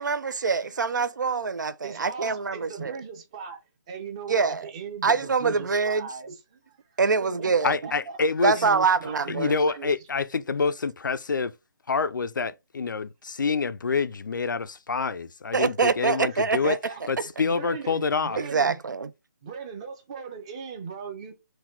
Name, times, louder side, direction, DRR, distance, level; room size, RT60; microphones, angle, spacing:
voice 1, 0.0-3.0 4.3-4.7 5.0-6.1 7.0-7.8 8.4-9.5 15.5-16.8 18.4-19.1, right 5 dB, 75° right, 0.5 m, -24 dB
voice 2, 1.8-3.6 3.9-7.5 7.8-8.2 8.6-9.9 16.1-17.0 17.4-18.8 19.4-21.3, right 5 dB, 20° right, 0.6 m, -39 dB
voice 3, 7.6-8.5 9.3-11.5 11.9-16.8 17.1-18.4, left 4 dB, 85° left, 0.5 m, -27 dB
4.0 x 2.3 x 4.3 m
hypercardioid pair, 165°, 10 cm